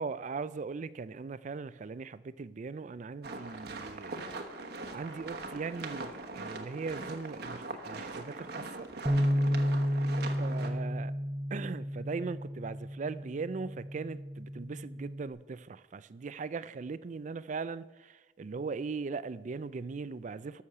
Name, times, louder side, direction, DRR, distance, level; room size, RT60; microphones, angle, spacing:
voice 1, 0.0-4.3 4.9-8.9 10.4-11.1 11.5-20.6, right 4 dB, 40° right, 17 dB, 0.4 m, -39 dB
sound 1, 3.2-10.7, right 3 dB, 60° right, 1.2 m, -41 dB
Bass guitar, 9.1-15.3, equal, 10° right, 0.8 m, -32 dB
13.0 x 6.4 x 6.6 m, 1.1 s
head